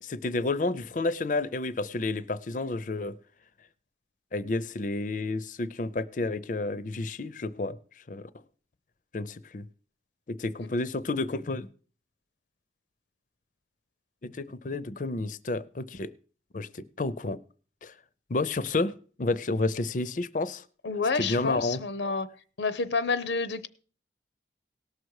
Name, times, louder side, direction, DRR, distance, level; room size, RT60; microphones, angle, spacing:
voice 1, 0.0-3.2 4.3-7.8 8.1-8.3 9.1-9.7 10.3-11.7 14.2-16.1 16.5-17.4 17.8-17.9 18.3-20.6 21.2-21.8, left 2 dB, 45° left, 0.6 m, -30 dB
voice 2, 20.8-22.3 22.6-23.7, left 4 dB, 85° left, 0.7 m, -29 dB
18.0 x 6.4 x 4.8 m
head